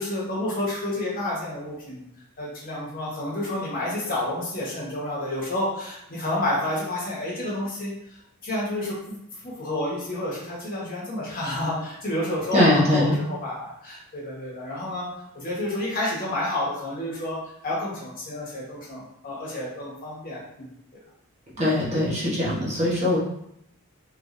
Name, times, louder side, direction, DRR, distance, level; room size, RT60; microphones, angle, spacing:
voice 1, 0.0-2.0 2.4-7.9 8.4-9.2 9.4-15.1 15.3-20.7, left 1 dB, 40° left, -5 dB, 1.2 m, -30 dB
voice 2, 12.5-13.2 21.6-23.2, left 1 dB, 30° right, -7 dB, 1.0 m, -21 dB
3.3 x 3.2 x 2.6 m, 0.77 s
head